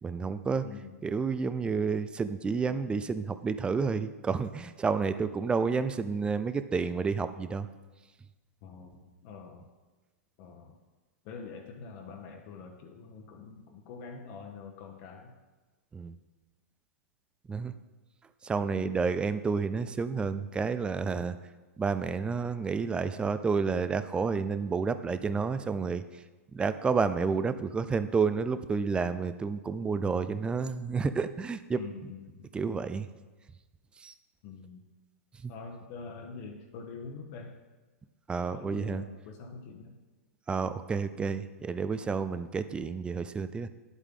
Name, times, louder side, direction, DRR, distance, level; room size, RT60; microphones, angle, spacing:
voice 1, 0.0-0.7 1.0-7.7 15.9-16.2 17.5-17.7 18.4-21.4 21.8-26.0 26.5-31.8 32.5-33.1 34.0-34.1 35.4-35.5 38.3-39.0 40.5-43.7, right 5 dB, 10° right, 12 dB, 0.4 m, -30 dB
voice 2, 0.6-1.0 8.6-9.7 10.4-10.8 11.2-15.3 18.7-19.1 31.7-32.5 34.4-34.8 35.5-37.6 38.5-40.0, left 5 dB, 45° left, 2 dB, 1.1 m, -45 dB
10.0 x 8.2 x 3.7 m, 1.2 s
hypercardioid pair, 130°, 8 cm